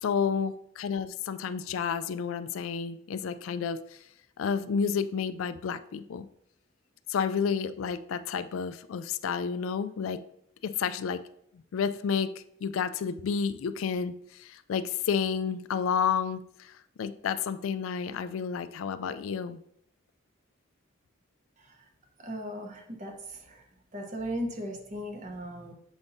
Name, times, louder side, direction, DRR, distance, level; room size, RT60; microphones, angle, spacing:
voice 1, 0.0-3.8 4.4-6.3 7.1-10.2 10.6-11.2 11.7-12.3 12.6-16.7 17.0-19.6, left 6 dB, 75° left, 13 dB, 0.3 m, -30 dB
voice 2, 22.2-23.6 23.9-25.7, equal, 35° right, 2 dB, 0.9 m, -37 dB
7.0 x 5.2 x 2.7 m, 0.73 s
head